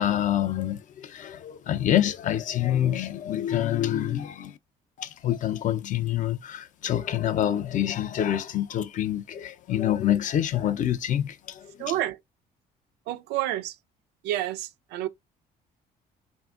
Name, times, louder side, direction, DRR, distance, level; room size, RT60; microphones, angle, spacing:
voice 1, 0.0-4.6 5.0-11.7, left 11 dB, 50° left, 0.4 m, -26 dB
voice 2, 11.8-12.2 13.1-13.8 14.2-15.1, right 13 dB, 85° right, 0.4 m, -29 dB
3.3 x 2.2 x 2.4 m
cardioid pair, 110°, 17 cm